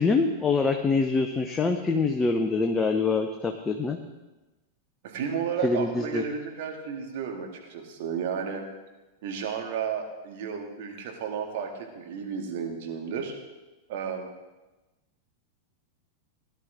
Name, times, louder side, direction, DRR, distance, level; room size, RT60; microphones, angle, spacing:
voice 1, 0.0-4.0 5.6-6.2, left 4 dB, 15° left, 5 dB, 0.8 m, -25 dB
voice 2, 5.0-8.7 9.2-13.3 13.9-14.3, right 6 dB, 50° right, 2 dB, 2.1 m, -32 dB
17.5 x 11.0 x 3.5 m, 1.1 s
figure-of-eight pair, 90°, 0 cm